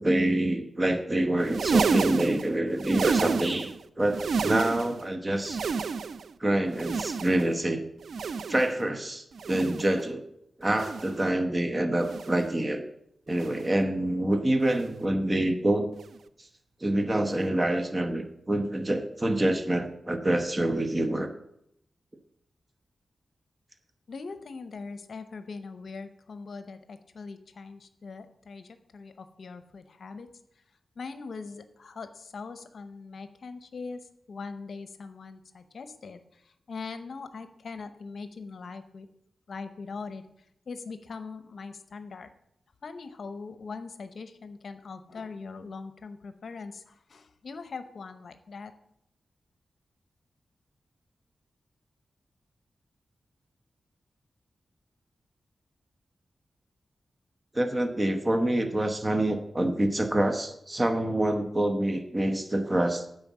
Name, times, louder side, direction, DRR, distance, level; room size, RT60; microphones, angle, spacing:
voice 1, 0.0-5.6 6.4-7.8 8.5-10.2 10.6-12.8 13.3-15.9 16.4-16.5 16.8-21.3 57.5-63.0, right 1 dB, 25° right, 7 dB, 0.9 m, -26 dB
sound 1, 1.4-3.8 4.1-5.0 5.4-6.3 6.7-7.6 8.0-8.8 9.3-10.0 10.7-11.2 12.0-12.5 13.3-13.8 14.7-15.0 16.0-16.2 17.3-17.4, right 5 dB, 75° right, 0.4 m, -30 dB
voice 2, 24.1-30.3 31.0-39.1 39.5-40.2 40.7-42.3 42.8-48.7, left 4 dB, 70° left, 10 dB, 0.7 m, -41 dB
9.1 x 5.3 x 7.3 m, 0.76 s
wide cardioid pair, 80°, 0 cm